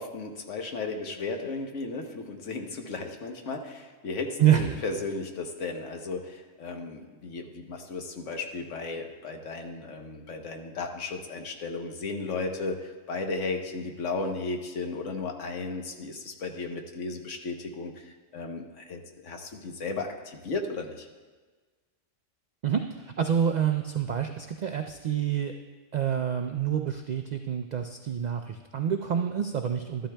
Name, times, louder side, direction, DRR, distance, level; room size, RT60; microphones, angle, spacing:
voice 1, 0.0-21.1, left 3 dB, 75° left, 3 dB, 1.3 m, -35 dB
voice 2, 4.4-4.8 22.6-25.5 25.9-30.1, right 9 dB, 80° right, 5 dB, 0.3 m, -27 dB
13.5 x 11.5 x 2.2 m, 1.4 s
omnidirectional pair, 1.3 m